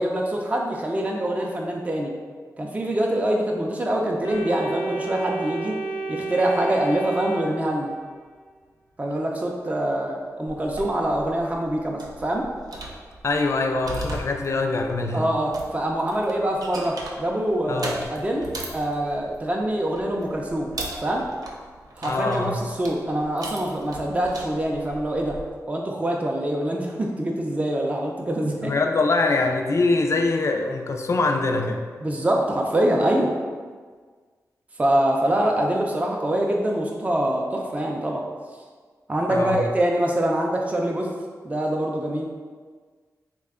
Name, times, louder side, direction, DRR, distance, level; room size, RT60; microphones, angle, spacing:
voice 1, 0.0-2.1 2.6-5.8 6.1-7.9 9.0-12.5 15.1-20.7 21.0-21.3 22.0-25.4 25.7-28.7 32.0-33.3 34.8-38.2 39.1-41.1 41.4-42.2, right 1 dB, 20° right, 0 dB, 0.4 m, -24 dB
Organ, 4.2-8.2, right 3 dB, 85° left, 0.8 m, -31 dB
sound 1, 10.5-25.5, right 2 dB, 75° right, 0.5 m, -39 dB
voice 2, 13.2-15.3 17.7-18.0 22.0-22.6 28.6-31.8 39.3-39.6, left 3 dB, 50° left, 4 dB, 0.4 m, -23 dB
3.3 x 2.2 x 3.6 m, 1.6 s
cardioid pair, 55°, 6 cm